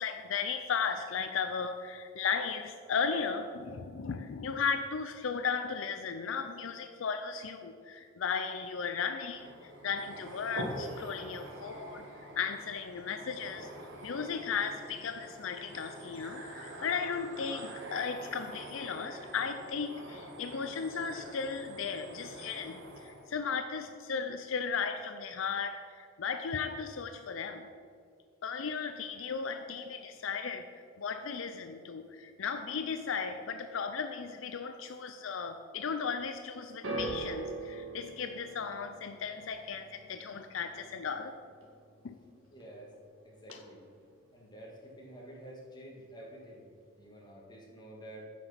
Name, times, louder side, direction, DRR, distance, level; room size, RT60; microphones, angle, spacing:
voice 1, 0.0-13.7 14.0-27.7 28.4-41.3 42.0-42.2, left 6 dB, 70° left, 8 dB, 0.5 m, -36 dB
sound 1, 9.3-23.3, right 1 dB, 65° right, 1.4 m, -45 dB
sound 2, 36.8-43.1 43.4-44.0 44.8-44.9, right 2 dB, 85° right, 1.9 m, -43 dB
voice 2, 42.5-43.0 43.2-43.8 44.3-46.6 47.0-48.2, right 1 dB, 20° left, -3 dB, 2.0 m, -49 dB
9.0 x 6.0 x 5.7 m, 2.2 s
head